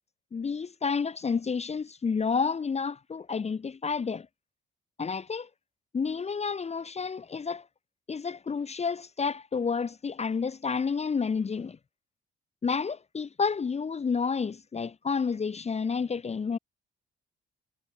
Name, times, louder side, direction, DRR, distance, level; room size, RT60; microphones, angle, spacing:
voice 1, 0.3-4.3 5.0-5.5 5.9-7.7 8.1-11.8 12.6-16.6, left 5 dB, 35° left, 1.2 m, -30 dB
cardioid pair, 90°, 20 cm